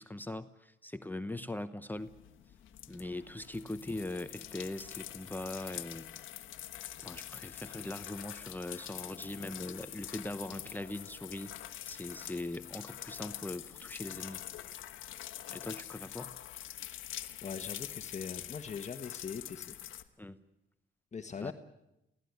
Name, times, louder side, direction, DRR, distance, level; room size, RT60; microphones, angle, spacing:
voice 1, 0.0-2.1 2.9-6.1 7.0-11.5 11.9-14.4 15.5-16.3 20.2-20.4 21.4-21.5, left 1 dB, 10° left, 10 dB, 0.9 m, -41 dB
sound 1, 2.0-20.0, left 13 dB, 85° left, 1.3 m, -45 dB
voice 2, 17.4-20.0 21.1-21.5, left 6 dB, 35° left, 5 dB, 1.5 m, -41 dB
24.5 x 16.5 x 9.6 m, 0.89 s
cardioid pair, 90°, 20 cm